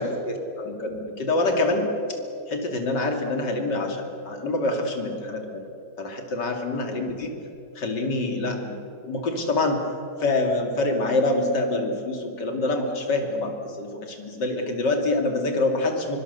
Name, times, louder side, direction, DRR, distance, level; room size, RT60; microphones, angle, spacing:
voice 1, 0.0-1.9 2.5-5.7 6.0-7.3 7.7-8.8 9.0-9.9 10.2-16.2, left 2 dB, 75° left, 3 dB, 3.2 m, -26 dB
25.0 x 23.5 x 6.8 m, 2.7 s
omnidirectional pair, 1.9 m